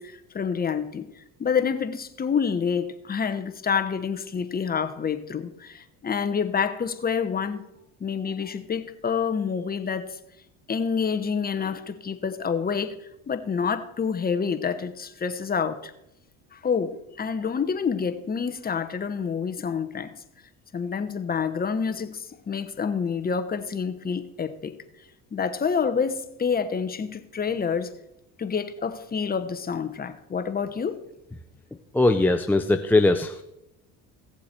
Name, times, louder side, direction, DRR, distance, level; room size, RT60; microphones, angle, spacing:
voice 1, 0.0-7.6 8.0-10.2 10.7-12.9 13.3-15.9 16.5-20.1 20.7-24.7 25.3-27.9 28.4-31.0, left 6 dB, 25° left, 1.0 m, -28 dB
voice 2, 31.9-33.4, left 2 dB, 5° left, 0.5 m, -20 dB
16.5 x 7.3 x 4.4 m
supercardioid pair, 100°, 35 cm